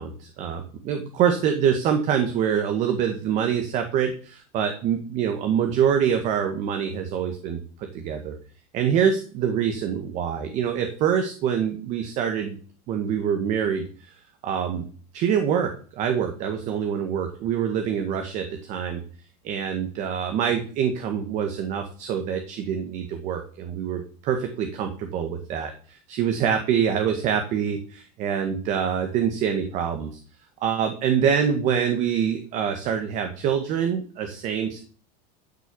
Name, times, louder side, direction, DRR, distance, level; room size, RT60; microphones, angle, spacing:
voice 1, 0.0-7.6 7.9-8.3 8.7-12.6 12.9-14.1 14.4-14.8 15.1-19.0 19.4-30.1 30.6-34.8, right 8 dB, 40° right, 6 dB, 1.6 m, -25 dB
12.0 x 6.3 x 6.9 m, 0.42 s
supercardioid pair, 160°, 19 cm